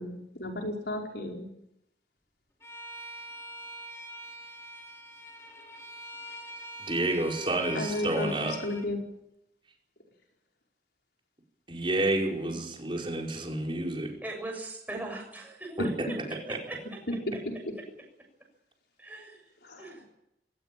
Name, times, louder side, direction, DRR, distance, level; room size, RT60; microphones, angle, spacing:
voice 1, 0.0-1.5 7.7-9.0 19.6-19.8, left 2 dB, 75° left, 1 dB, 4.9 m, -34 dB
Bowed string instrument, 2.6-8.9, equal, 15° left, 3.7 m, -44 dB
voice 2, 6.8-8.6 11.7-14.1 15.8-15.9 16.3-16.6, right 2 dB, 30° right, 0 dB, 5.2 m, -30 dB
voice 3, 14.2-15.8 16.1-16.2 16.5-17.0 17.3-17.4 17.8-17.9 19.0-19.4 19.8-20.1, right 2 dB, 10° right, 1 dB, 7.0 m, -40 dB
21.0 x 18.5 x 9.1 m, 0.82 s
head